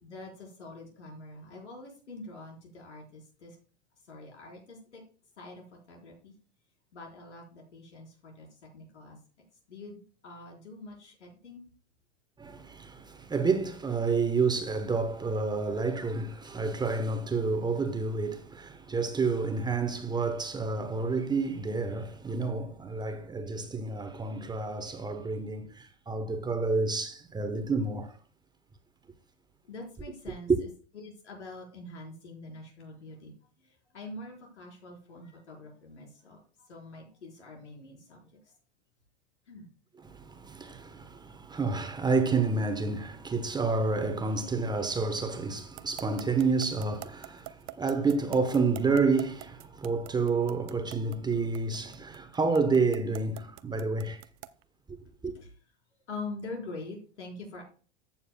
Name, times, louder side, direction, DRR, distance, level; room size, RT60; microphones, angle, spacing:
voice 1, 0.0-3.6 4.1-5.0 5.4-6.3 6.9-8.5 8.7-9.2 9.7-11.6 29.6-30.7 30.9-33.3 33.6-38.3 39.5-39.7 55.3-55.5 56.1-57.6, left 2 dB, 85° left, 4.6 m, -45 dB
voice 2, 12.4-28.1 30.5-30.6 40.0-54.2 55.2-55.3, right 4 dB, 10° right, 1.0 m, -29 dB
sound 1, 45.8-54.6, right 17 dB, 40° right, 0.6 m, -44 dB
14.5 x 7.1 x 2.3 m
hypercardioid pair, 110°, 34 cm